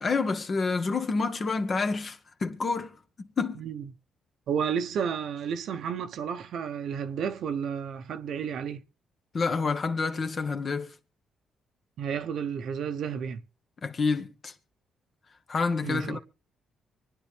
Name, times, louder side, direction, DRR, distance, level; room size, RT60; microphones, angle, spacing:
voice 1, 0.0-2.9 3.4-3.6 9.3-10.9 13.8-14.5 15.5-16.2, left 4 dB, 40° left, 1.5 m, -28 dB
voice 2, 4.5-8.8 12.0-13.4 15.8-16.2, right 7 dB, 70° right, 1.0 m, -31 dB
24.5 x 9.7 x 3.4 m
cardioid pair, 90°, 0 cm